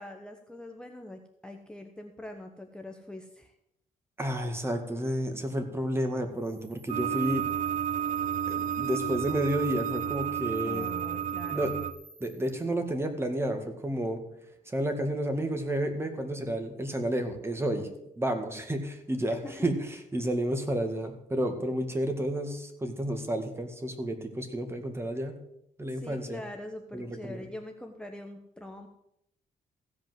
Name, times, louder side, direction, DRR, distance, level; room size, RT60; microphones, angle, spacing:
voice 1, 0.0-3.5 10.7-11.7 19.4-19.7 25.9-28.9, left 1 dB, 5° left, 3 dB, 1.0 m, -43 dB
voice 2, 4.2-7.5 8.5-10.9 11.5-11.7 12.2-14.2 14.7-17.9 18.2-25.4 25.8-26.4 26.9-27.5, right 1 dB, 15° right, 6 dB, 2.0 m, -31 dB
sound 1, 6.3-12.6, right 1 dB, 35° right, 2.7 m, -54 dB
sound 2, 6.9-11.9, right 8 dB, 55° right, 0.6 m, -31 dB
15.5 x 5.3 x 7.9 m, 0.79 s
cardioid pair, 110°, 15 cm